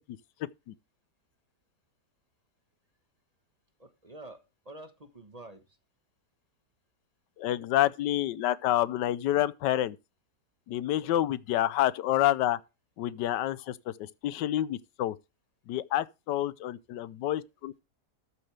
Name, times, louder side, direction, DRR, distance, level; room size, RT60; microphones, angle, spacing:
voice 1, 3.8-5.8 17.0-17.1, right 2 dB, 25° right, 1.2 m, -48 dB
voice 2, 7.4-10.0 10.7-12.6 13.0-15.2 15.7-17.8, left 13 dB, 90° left, 1.3 m, -28 dB
13.5 x 7.8 x 3.3 m
omnidirectional pair, 1.8 m